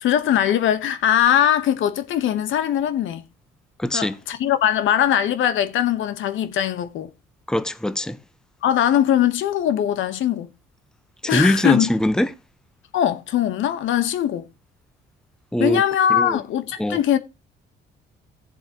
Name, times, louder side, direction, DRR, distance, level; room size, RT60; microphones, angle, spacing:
voice 1, 0.0-3.2 3.9-7.1 8.6-10.5 11.3-11.9 12.9-14.5 15.6-17.2, left 10 dB, 80° left, 1.1 m, -21 dB
voice 2, 3.8-4.2 7.5-8.2 11.2-12.3 15.5-15.8 16.1-16.4 16.8-17.0, left 1 dB, 5° left, 0.9 m, -22 dB
17.0 x 7.5 x 2.9 m
cardioid pair, 90°, 20 cm